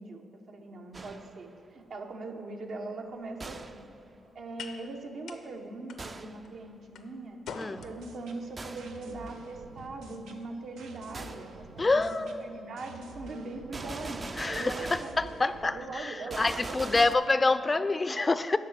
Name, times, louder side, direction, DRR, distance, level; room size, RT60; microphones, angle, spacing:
voice 1, 0.0-3.9 4.3-7.4 7.8-17.1 18.5-18.6, right 3 dB, 65° right, 3 dB, 1.0 m, -41 dB
Gunshot gunfire, 0.9-1.4 3.4-3.9 6.0-6.5 8.6-9.0 11.1-11.5 13.7-15.3 16.3-17.1, right 3 dB, 40° right, 0.4 m, -41 dB
sound 1, 3.0-11.4, left 5 dB, 80° left, 0.7 m, -50 dB
sound 2, 7.8-15.8, right 3 dB, 90° right, 0.7 m, -49 dB
voice 2, 11.8-12.4 14.4-18.6, left 3 dB, 30° left, 13 dB, 0.4 m, -27 dB
8.6 x 5.7 x 7.3 m, 2.9 s
supercardioid pair, 60°, 0 cm